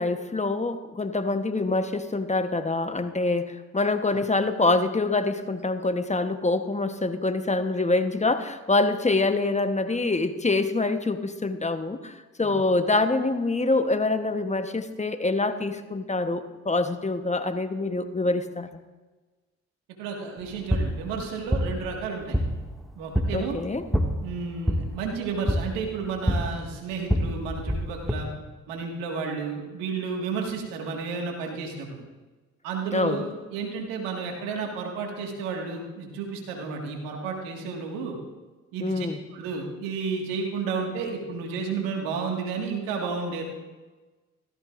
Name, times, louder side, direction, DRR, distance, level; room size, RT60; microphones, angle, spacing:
voice 1, 0.0-12.1 12.4-18.7 23.3-23.9 32.9-33.2 38.8-39.2, left 2 dB, 20° left, 8 dB, 1.0 m, -25 dB
voice 2, 20.0-22.4 23.0-23.6 24.2-28.3 28.7-32.0 32.6-38.2 38.7-39.1 39.3-43.4, right 5 dB, 85° right, 1 dB, 1.9 m, -32 dB
sound 1, 20.4-28.1, equal, ahead, 2.0 m, -28 dB
16.5 x 14.0 x 2.6 m, 1.2 s
hypercardioid pair, 45°, 33 cm